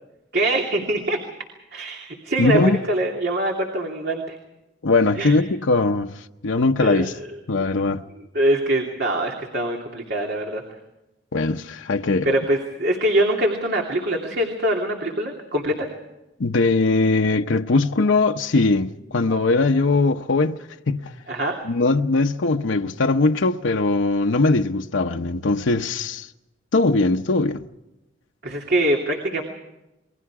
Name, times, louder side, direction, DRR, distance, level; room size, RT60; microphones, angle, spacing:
voice 1, 0.3-1.2 1.7-4.4 5.1-5.4 6.8-7.3 7.5-7.7 8.1-10.6 12.2-15.9 21.3-21.6 28.4-29.4, right 1 dB, 60° right, 2.8 m, -23 dB
voice 2, 2.4-2.8 4.8-7.2 7.5-8.0 11.3-12.3 16.4-20.6 20.9-21.1 21.6-26.3 26.7-27.7, left 3 dB, 90° left, 0.8 m, -20 dB
28.5 x 22.5 x 4.8 m
head